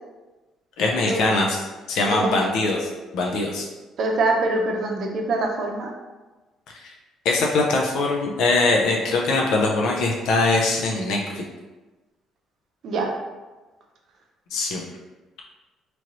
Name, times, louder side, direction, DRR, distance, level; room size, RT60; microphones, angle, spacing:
voice 1, 0.8-1.6 1.9-3.7 6.7-6.9 7.2-11.4 14.5-14.8, left 2 dB, 75° left, -1 dB, 0.4 m, -22 dB
voice 2, 2.0-2.4 4.0-5.9 12.8-13.1, right 2 dB, 55° right, 1 dB, 0.6 m, -24 dB
3.0 x 2.9 x 2.6 m, 1.2 s
cardioid pair, 120°, 0 cm